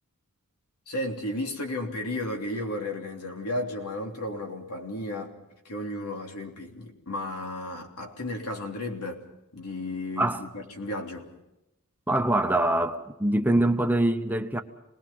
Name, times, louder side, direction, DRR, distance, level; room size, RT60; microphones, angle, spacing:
voice 1, 0.9-5.3 5.6-9.2 9.5-11.3, left 1 dB, 85° left, 3.3 m, -33 dB
voice 2, 12.1-14.6, right 1 dB, 10° right, 1.0 m, -24 dB
27.5 x 20.5 x 5.6 m
head